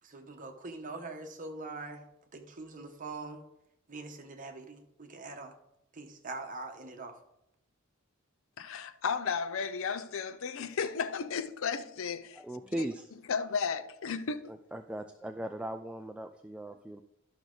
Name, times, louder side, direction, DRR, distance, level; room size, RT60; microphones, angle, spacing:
voice 1, 0.0-2.0 2.3-3.4 3.9-5.6 5.9-7.2, right 3 dB, 40° right, 1.1 m, -43 dB
voice 2, 8.6-12.4 13.3-14.5, left 6 dB, 65° left, 0.5 m, -34 dB
voice 3, 12.4-13.1 14.5-17.0, right 1 dB, 5° right, 0.3 m, -38 dB
11.5 x 6.1 x 3.9 m
head